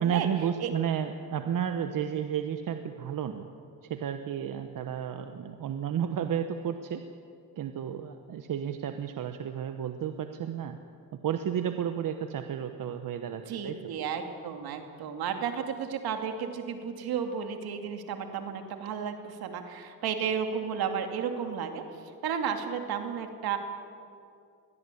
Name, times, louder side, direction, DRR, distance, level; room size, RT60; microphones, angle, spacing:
voice 1, 0.0-3.5 3.9-7.0 7.6-10.8 11.2-13.9, right 9 dB, 60° right, 8 dB, 1.2 m, -32 dB
voice 2, 13.5-21.8 22.2-23.6, right 7 dB, 75° right, 5 dB, 2.5 m, -33 dB
22.0 x 16.5 x 8.4 m, 2.4 s
cardioid pair, 80°, 37 cm